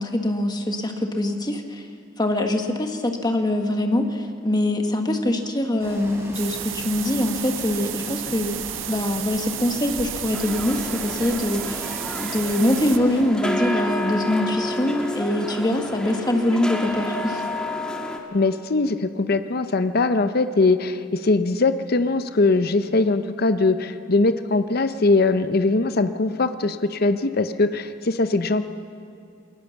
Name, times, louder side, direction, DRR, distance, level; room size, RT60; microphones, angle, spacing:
voice 1, 0.0-1.9 2.2-8.6 8.9-17.4, left 1 dB, 20° left, 5 dB, 1.4 m, -23 dB
sound 1, 5.8-13.2, right 1 dB, 15° right, 3.5 m, -39 dB
sound 2, 6.3-13.0, right 13 dB, 80° right, 0.6 m, -33 dB
sound 3, 10.3-18.2, left 1 dB, 5° left, 1.6 m, -30 dB
voice 2, 18.3-28.6, left 3 dB, 50° left, 10 dB, 0.7 m, -21 dB
21.5 x 19.0 x 7.1 m, 2.4 s
head